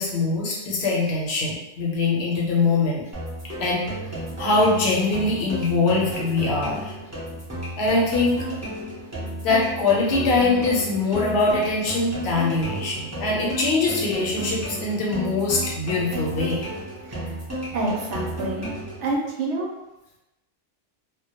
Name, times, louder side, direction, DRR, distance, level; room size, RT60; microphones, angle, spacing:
voice 1, 0.0-3.0 3.6-3.8 4.4-6.9 7.8-8.4 9.4-16.6, left 3 dB, 65° left, -3 dB, 0.8 m, -22 dB
sound 1, 3.1-19.1, right 1 dB, 20° right, 0.5 m, -33 dB
voice 2, 17.7-18.7 19.0-19.7, right 2 dB, 80° right, -1 dB, 0.9 m, -27 dB
2.1 x 2.1 x 2.8 m, 0.95 s
omnidirectional pair, 1.2 m